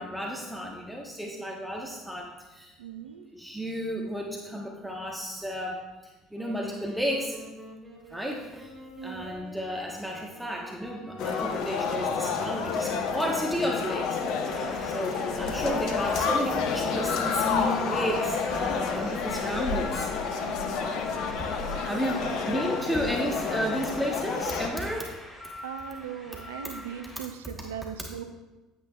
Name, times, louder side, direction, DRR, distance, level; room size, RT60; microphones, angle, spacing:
voice 1, 0.0-2.7 3.3-5.8 6.3-7.4 8.1-8.7 9.0-14.2 14.4-20.1 21.8-25.1, equal, 5° right, -1 dB, 1.3 m, -32 dB
voice 2, 2.8-3.3 9.0-9.4 15.4-15.9 20.4-20.9 22.2-22.5 25.6-28.2, right 8 dB, 75° right, 9 dB, 0.6 m, -40 dB
Wind instrument woodwind instrument, 6.3-17.2, right 1 dB, 20° right, 2.6 m, -47 dB
sound 1, 11.2-24.7, left 5 dB, 60° left, 1.0 m, -29 dB
sound 2, 14.4-27.2, left 1 dB, 15° left, 2.4 m, -44 dB
10.0 x 9.2 x 2.4 m, 1.2 s
figure-of-eight pair, 60°, 0 cm